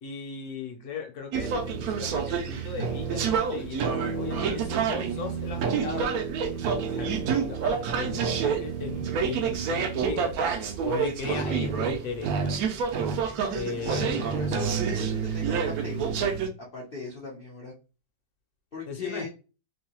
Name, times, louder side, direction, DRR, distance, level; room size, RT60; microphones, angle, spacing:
voice 1, 0.0-6.2 6.9-10.3 10.8-12.6 13.5-14.2 18.9-19.3, left 5 dB, 65° left, 2 dB, 1.1 m, -37 dB
sound 1, 1.3-16.5, right 6 dB, 75° right, 0.9 m, -28 dB
voice 2, 13.9-16.3 16.6-17.7 18.7-19.3, left 3 dB, 80° left, -3 dB, 0.5 m, -39 dB
3.0 x 2.7 x 2.9 m, 0.33 s
omnidirectional pair, 2.0 m